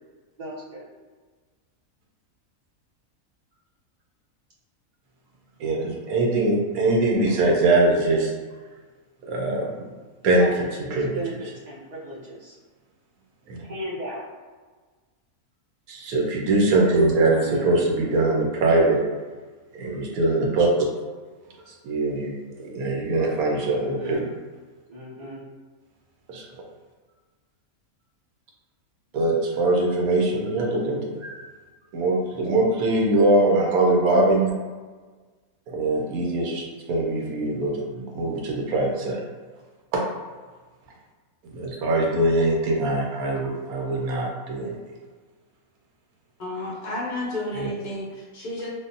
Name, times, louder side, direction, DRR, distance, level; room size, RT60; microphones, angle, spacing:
voice 1, 0.4-0.8 10.4-12.5 13.6-14.2 17.3-17.8 19.8-20.0 23.7-24.3 24.9-25.4 31.2-31.4, equal, 60° right, -6 dB, 0.4 m, -36 dB
voice 2, 5.6-8.3 9.2-9.8 10.2-10.5 10.8-11.2 13.5-13.6 15.9-19.0 19.8-20.7 21.8-24.2 26.3-26.4 29.1-31.1 31.9-34.5 35.7-39.2 39.9-40.0 41.5-44.8 47.6-47.7, right 2 dB, 85° right, -1 dB, 1.1 m, -22 dB
voice 3, 46.4-48.7, left 1 dB, 45° left, -5 dB, 0.6 m, -31 dB
3.5 x 2.1 x 2.5 m, 1.4 s
omnidirectional pair, 1.5 m